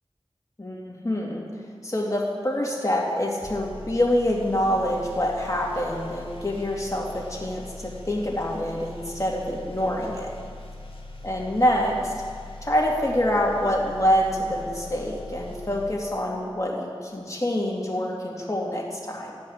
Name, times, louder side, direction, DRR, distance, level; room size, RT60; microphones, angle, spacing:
voice 1, 0.6-1.4 1.8-10.3 11.2-12.1 12.6-19.4, equal, 30° left, -2 dB, 2.4 m, -26 dB
sound 1, 3.4-16.8, left 2 dB, 70° left, 1.5 m, -41 dB
14.0 x 5.2 x 9.4 m, 2.3 s
wide cardioid pair, 40°, 10 cm